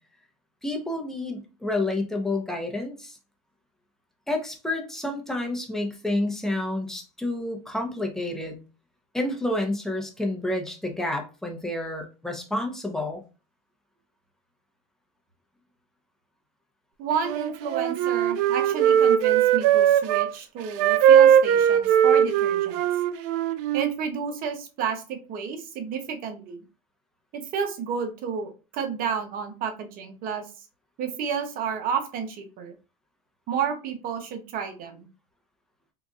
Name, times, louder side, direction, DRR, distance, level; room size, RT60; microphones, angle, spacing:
voice 1, 0.6-3.2 4.3-8.6 9.1-13.2, left 1 dB, ahead, 2 dB, 0.9 m, -29 dB
voice 2, 17.0-22.8 23.7-26.6 27.3-30.4 31.0-32.7 33.5-35.1, right 6 dB, 50° right, 5 dB, 0.9 m, -31 dB
Wind instrument woodwind instrument, 17.2-20.3 20.8-23.9, right 9 dB, 70° right, 0.4 m, -20 dB
3.8 x 2.6 x 2.4 m, 0.32 s
supercardioid pair, 105°, 18 cm